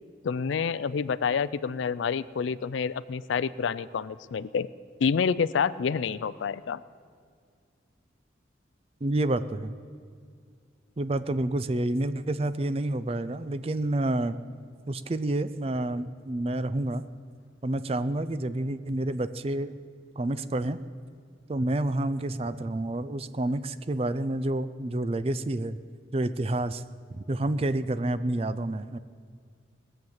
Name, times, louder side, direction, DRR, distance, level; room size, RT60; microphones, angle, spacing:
voice 1, 0.2-4.7 5.0-6.8, left 6 dB, 80° left, 17 dB, 0.4 m, -28 dB
voice 2, 9.0-9.7 11.0-14.3 14.9-17.0 17.6-19.8 20.2-20.8 21.5-25.8 26.1-26.8 27.1-29.0, right 1 dB, 30° right, 13 dB, 0.4 m, -29 dB
19.0 x 7.8 x 7.2 m, 2.2 s
head